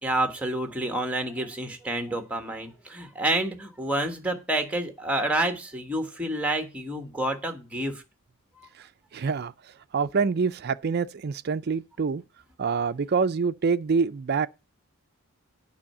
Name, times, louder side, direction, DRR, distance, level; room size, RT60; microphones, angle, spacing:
voice 1, 0.0-8.0, right 1 dB, 5° right, 1.3 m, -29 dB
voice 2, 9.1-9.5 9.9-12.2 12.6-14.5, right 5 dB, 45° right, 0.4 m, -26 dB
8.7 x 5.6 x 7.6 m
head